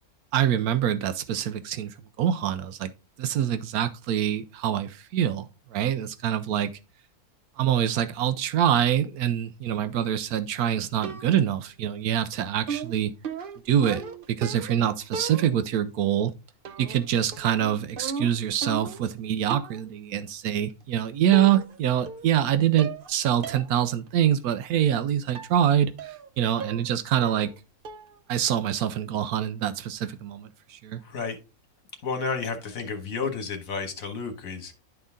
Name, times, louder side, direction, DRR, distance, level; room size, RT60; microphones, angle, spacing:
voice 1, 0.3-2.9 3.2-6.7 7.6-13.1 13.7-14.0 14.3-16.3 16.8-27.5 28.3-31.0, right 10 dB, 85° right, 1.1 m, -25 dB
sound 1, 11.0-11.6 12.7-14.8 15.1-15.8 16.6-17.1 17.3-19.1 19.5-19.9 20.8-20.9 21.3-21.8 22.1-22.5 22.8-23.1 23.4-23.7 24.1-24.2 25.3-25.6 26.0-26.3 26.6-26.9 27.2-27.6 27.8-28.2, right 5 dB, 55° right, 0.7 m, -36 dB
voice 2, 31.0-31.4 32.0-34.8, left 5 dB, 65° left, 1.7 m, -31 dB
11.0 x 3.9 x 3.6 m
omnidirectional pair, 1.6 m